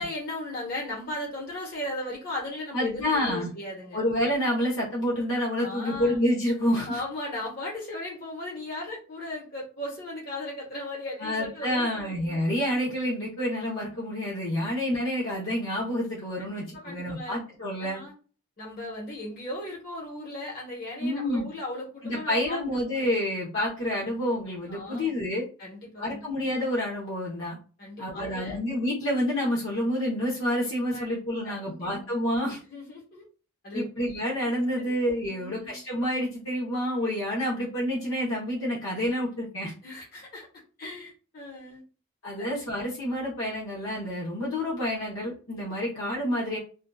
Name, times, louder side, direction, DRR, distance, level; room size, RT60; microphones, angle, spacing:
voice 1, 0.0-4.0 5.6-6.2 6.9-12.4 16.4-17.4 17.8-18.1 18.6-22.6 22.9-23.0 24.7-25.1 25.6-26.3 27.8-28.6 30.9-31.0 31.4-31.9 32.7-33.2 33.6-33.8 34.8-34.9 35.2-35.8 39.8-40.5 40.8-41.8 42.4-42.5, left 1 dB, 45° left, -4 dB, 1.1 m, -37 dB
voice 2, 2.7-3.5 3.9-7.0 11.2-18.0 21.0-21.5 22.0-25.5 26.0-27.6 28.0-32.6 33.7-39.7 42.2-46.6, equal, 65° left, -5 dB, 0.8 m, -28 dB
2.7 x 2.3 x 2.3 m, 0.37 s
head